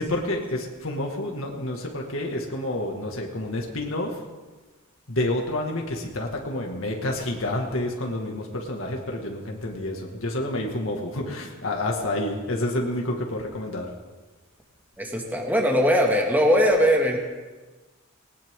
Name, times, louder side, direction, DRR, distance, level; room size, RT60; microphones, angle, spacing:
voice 1, 0.0-4.2 5.1-13.9, left 1 dB, 70° left, 0 dB, 2.1 m, -29 dB
voice 2, 15.0-17.2, equal, 10° right, 0 dB, 2.2 m, -20 dB
20.0 x 19.0 x 3.8 m, 1.3 s
head